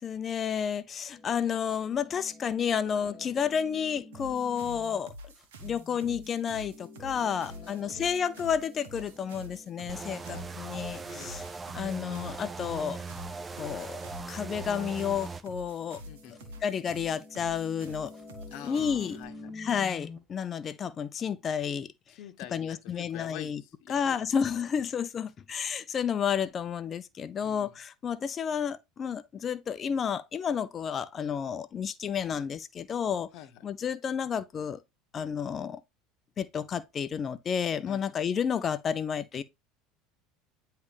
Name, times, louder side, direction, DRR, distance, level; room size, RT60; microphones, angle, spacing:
voice 1, 0.0-5.3 5.6-11.4 11.7-13.0 13.6-14.0 14.3-16.0 16.6-18.1 18.7-19.2 19.6-21.9 22.5-23.6 23.9-33.3 33.6-34.8 35.1-35.8 36.4-39.4, left 7 dB, 35° left, 0.6 m, -31 dB
sound 1, 1.1-5.0 5.3-11.5 12.0-12.1 12.7-12.8 13.8-13.9 14.7-14.8 15.7-20.2, left 3 dB, 15° left, 2.3 m, -49 dB
voice 2, 3.0-3.4 7.1-8.1 10.0-10.5 11.0-11.4 16.1-16.5 18.5-19.5 22.1-24.2 27.4-27.8 33.3-33.6 37.9-38.2, left 11 dB, 65° left, 0.9 m, -47 dB
sound 2, 4.1-19.2, equal, 85° right, 1.4 m, -47 dB
sound 3, 9.9-15.4, right 4 dB, 20° right, 0.6 m, -40 dB
9.6 x 3.3 x 3.4 m
hypercardioid pair, 90°, 0 cm